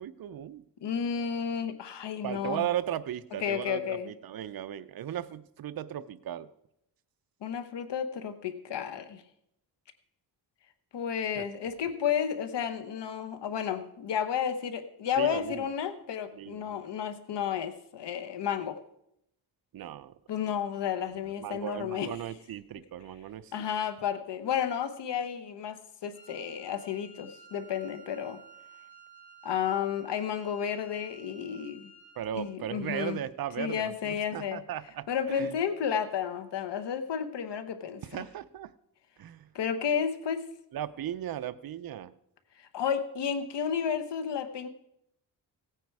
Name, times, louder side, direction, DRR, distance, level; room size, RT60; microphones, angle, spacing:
voice 1, 0.0-0.6 2.2-6.5 11.4-11.5 15.2-15.7 16.3-16.8 19.7-20.1 21.4-23.5 32.2-35.5 38.1-38.7 39.2-39.5 40.7-42.1, right 11 dB, 55° right, 12 dB, 0.6 m, -36 dB
voice 2, 0.8-2.7 3.4-4.1 7.4-9.2 10.9-18.8 20.3-22.2 23.5-28.4 29.4-31.9 32.3-33.2 33.6-34.6 35.1-38.2 39.5-40.5 42.6-44.7, left 8 dB, 75° left, 9 dB, 1.2 m, -32 dB
Wind instrument woodwind instrument, 26.1-32.5, right 2 dB, 15° left, 3.0 m, -54 dB
16.0 x 9.2 x 4.7 m, 0.79 s
wide cardioid pair, 120°, 42 cm